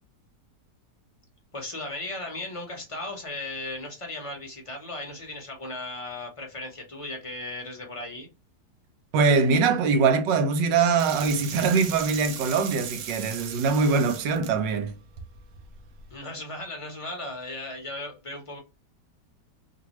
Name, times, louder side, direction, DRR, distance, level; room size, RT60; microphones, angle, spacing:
voice 1, 1.5-8.3 16.1-18.6, left 2 dB, 30° left, 0.5 m, -36 dB
voice 2, 9.1-14.9, right 4 dB, 90° right, 1.3 m, -22 dB
sound 1, 11.0-16.2, right 7 dB, 75° right, 0.7 m, -39 dB
2.9 x 2.5 x 3.0 m
omnidirectional pair, 1.9 m